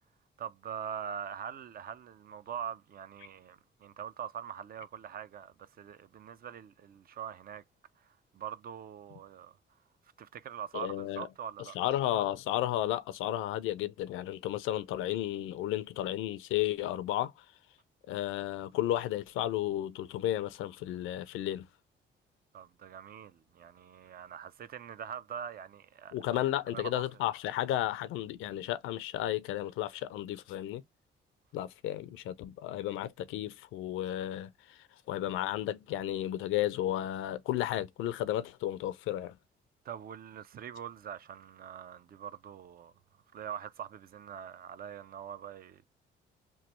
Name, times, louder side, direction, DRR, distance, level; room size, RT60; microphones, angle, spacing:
voice 1, 0.4-7.6 8.0-9.6 10.2-11.8 22.5-26.2 26.7-27.0 39.8-42.9 43.3-45.8, right 8 dB, 50° right, 0.4 m, -43 dB
voice 2, 10.7-11.3 11.7-17.3 18.1-21.7 26.1-30.8 31.5-39.4, left 13 dB, 90° left, 0.5 m, -33 dB
3.1 x 2.1 x 3.0 m
cardioid pair, 90°, 20 cm